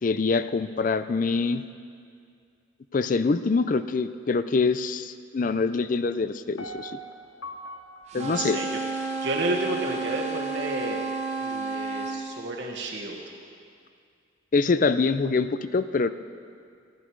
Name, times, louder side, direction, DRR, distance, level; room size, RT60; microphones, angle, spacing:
voice 1, 0.0-1.6 2.9-7.0 8.1-8.6 14.5-16.1, left 4 dB, 40° left, 12 dB, 0.4 m, -25 dB
Piano, 6.6-9.7 10.1-10.2, right 1 dB, 70° left, 0.8 m, -43 dB
sound 1, 8.1-12.2, right 4 dB, 35° right, 1.0 m, -31 dB
voice 2, 8.1-11.0 11.4-13.2, right 2 dB, 60° right, -1 dB, 1.4 m, -31 dB
15.0 x 12.0 x 4.7 m, 2.3 s
head